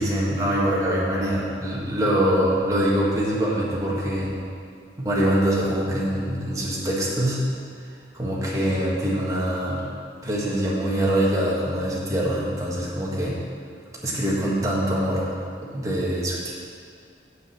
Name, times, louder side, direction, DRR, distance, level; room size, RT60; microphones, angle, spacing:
voice 1, 0.0-4.3 5.0-7.4 8.1-9.8 10.2-13.4 14.0-15.4 15.7-16.5, equal, 20° right, -6 dB, 1.8 m, -24 dB
7.4 x 6.3 x 7.3 m, 2.2 s
head